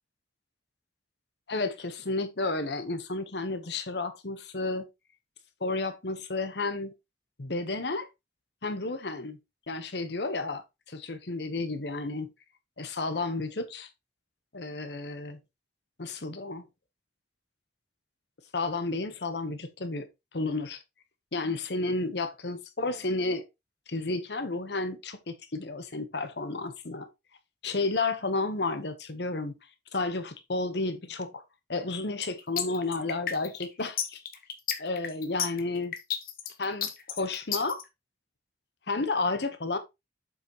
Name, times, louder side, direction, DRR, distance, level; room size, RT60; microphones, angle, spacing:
voice 1, 1.5-4.9 5.6-6.9 7.4-8.1 8.6-9.4 9.7-12.3 12.8-13.9 14.5-15.4 16.0-16.6 18.5-20.1 20.3-20.8 21.3-23.4 23.9-27.1 27.6-29.5 29.9-31.4 31.7-34.2 34.8-35.9 36.6-37.8 38.9-39.8, left 3 dB, 75° left, 1.1 m, -32 dB
sound 1, 32.2-37.8, left 8 dB, 50° left, 1.0 m, -32 dB
7.5 x 5.7 x 3.0 m
head